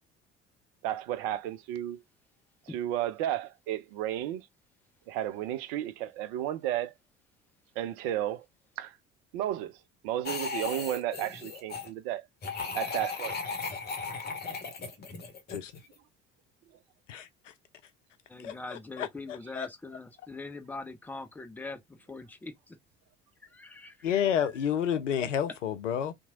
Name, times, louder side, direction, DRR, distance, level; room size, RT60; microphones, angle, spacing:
voice 1, 0.8-2.0 2.7-4.5 5.1-6.9 7.8-8.4 8.8-8.9 9.3-9.8 10.0-12.3 12.7-13.4, right 12 dB, 55° right, 0.5 m, -33 dB
sound 1, 10.2-11.9 12.4-15.9, left 5 dB, 25° left, 0.8 m, -36 dB
voice 2, 17.1-17.5 18.4-19.7 24.0-26.1, left 9 dB, 80° left, 0.5 m, -30 dB
voice 3, 18.3-22.8 23.4-24.5, left 3 dB, 5° left, 0.3 m, -43 dB
2.8 x 2.1 x 2.8 m
figure-of-eight pair, 55°, 36 cm